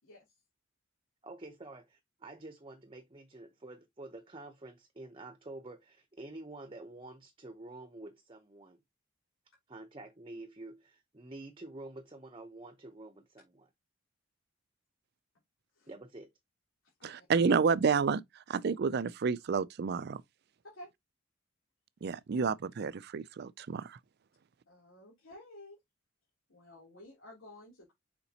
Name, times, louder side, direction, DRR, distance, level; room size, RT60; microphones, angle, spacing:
voice 1, 1.2-8.8 9.7-13.7 15.9-16.3, right 2 dB, 25° right, 0.8 m, -48 dB
voice 2, 17.0-18.2 18.5-20.2 22.0-24.0, right 5 dB, 50° right, 0.4 m, -30 dB
voice 3, 24.7-25.8 26.5-27.9, left 1 dB, 85° left, 3.2 m, -52 dB
6.8 x 5.1 x 2.9 m
head